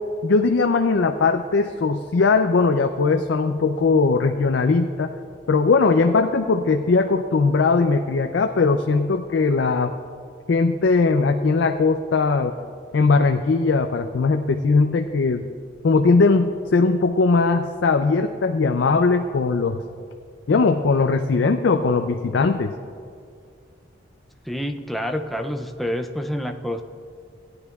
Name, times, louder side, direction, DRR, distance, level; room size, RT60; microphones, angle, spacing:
voice 1, 0.2-5.1 5.5-9.9 10.5-12.5 12.9-15.5 15.8-19.8 20.5-22.7, left 4 dB, 70° left, 6 dB, 0.4 m, -19 dB
voice 2, 24.5-26.8, equal, ahead, 4 dB, 0.4 m, -28 dB
16.5 x 9.8 x 2.3 m, 2.3 s
head